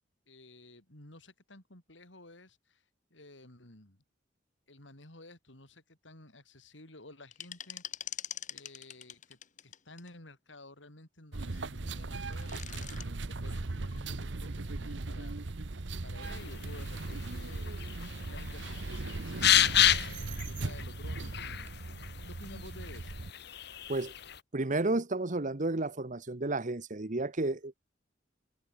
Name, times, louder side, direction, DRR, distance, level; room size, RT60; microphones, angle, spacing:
voice 1, 0.3-2.8 3.1-4.0 4.7-15.4 16.0-17.8 18.2-23.3, left 2 dB, 85° left, 6.1 m, -53 dB
sound 1, 7.3-10.1 12.2-13.1, left 10 dB, 45° left, 1.9 m, -43 dB
sound 2, 11.3-23.3, right 2 dB, 70° right, 1.0 m, -38 dB
sound 3, 16.2-24.4, left 11 dB, 65° left, 2.2 m, -32 dB
voice 2, 24.5-27.9, right 2 dB, 45° right, 1.2 m, -32 dB
head